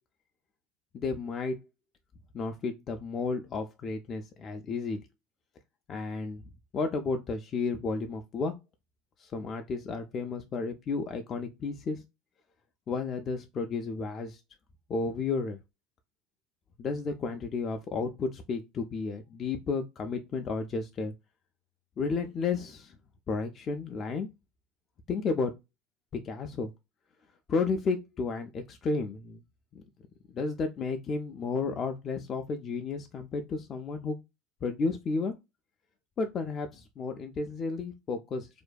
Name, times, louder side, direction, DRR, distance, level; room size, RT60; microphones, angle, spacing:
voice 1, 0.9-1.6 2.3-5.0 5.9-6.4 6.7-8.5 9.2-12.0 12.9-14.4 14.9-15.6 16.8-21.1 22.0-23.0 23.3-24.3 25.1-25.5 26.2-26.7 27.5-29.4 29.7-29.8 30.3-34.2 34.6-35.3 36.2-38.5, left 4 dB, 35° left, 0.3 m, -32 dB
2.5 x 2.2 x 2.3 m
supercardioid pair, 95°, 0 cm